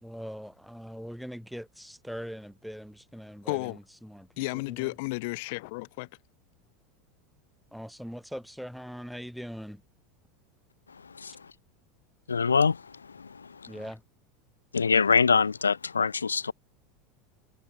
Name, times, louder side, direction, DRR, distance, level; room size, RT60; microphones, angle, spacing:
voice 1, 0.0-4.9 7.7-9.8 13.7-14.0, equal, ahead, 1.6 m, -41 dB
voice 2, 3.5-3.8 4.4-6.1, left 26 dB, 60° left, 0.7 m, -33 dB
voice 3, 12.3-12.8 13.2-13.5 14.7-16.5, left 5 dB, 90° left, 0.4 m, -24 dB
hypercardioid pair, 85°, 0 cm